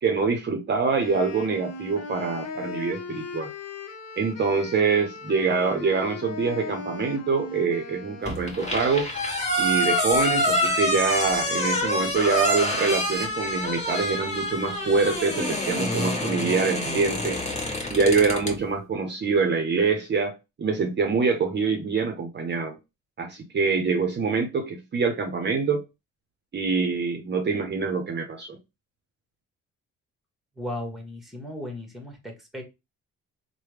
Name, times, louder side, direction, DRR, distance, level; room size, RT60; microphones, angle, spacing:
voice 1, 0.0-3.5 4.2-9.1 9.6-17.4 17.9-22.8 23.2-25.8 26.5-28.6, right 4 dB, 35° right, 0.7 m, -25 dB
Wind instrument woodwind instrument, 1.0-9.1, left 4 dB, 55° left, 0.8 m, -38 dB
sound 1, 8.3-18.6, left 1 dB, 20° left, 1.2 m, -26 dB
voice 2, 30.6-32.6, left 1 dB, ahead, 1.1 m, -36 dB
3.2 x 2.2 x 3.2 m
cardioid pair, 90°, 30 cm